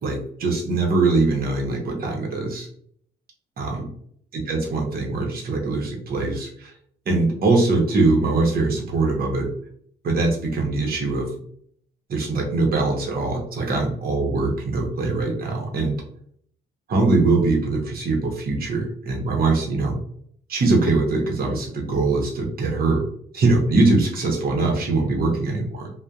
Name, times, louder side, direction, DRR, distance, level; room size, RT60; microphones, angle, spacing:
voice 1, 0.0-2.7 3.6-3.9 4.3-6.7 7.1-9.5 10.0-11.3 12.1-16.0 16.9-20.0 20.5-23.0 23.3-25.9, right 3 dB, 50° right, 1 dB, 0.8 m, -22 dB
2.6 x 2.1 x 2.3 m, 0.62 s
cardioid pair, 90°, 20 cm